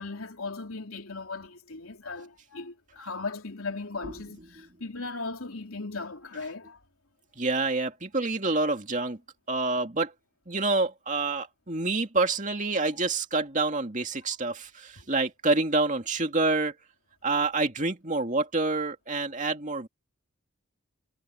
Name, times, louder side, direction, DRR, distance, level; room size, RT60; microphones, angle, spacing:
voice 1, 0.0-6.8 12.9-13.0, left 3 dB, 75° left, 3.1 m, -37 dB
voice 2, 7.4-9.2 9.5-10.1 10.5-16.7 17.2-19.9, right 3 dB, 35° right, 2.5 m, -27 dB
head